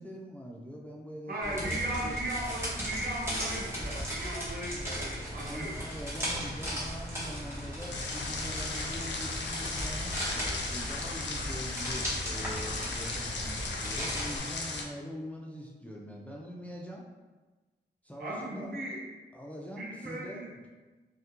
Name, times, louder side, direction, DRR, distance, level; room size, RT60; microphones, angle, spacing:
voice 1, 0.0-2.2 5.3-10.2 10.6-17.0 18.0-18.7 19.3-20.7, equal, 10° left, -2 dB, 0.4 m, -43 dB
voice 2, 1.3-5.8 18.2-19.0 19.7-20.5, right 1 dB, 60° right, -4 dB, 0.8 m, -36 dB
sound 1, 1.4-14.4, equal, 15° right, 1.0 m, -36 dB
sound 2, 7.9-14.8, left 3 dB, 80° left, 0.4 m, -37 dB
2.3 x 2.1 x 2.8 m, 1.2 s
cardioid pair, 65°, 18 cm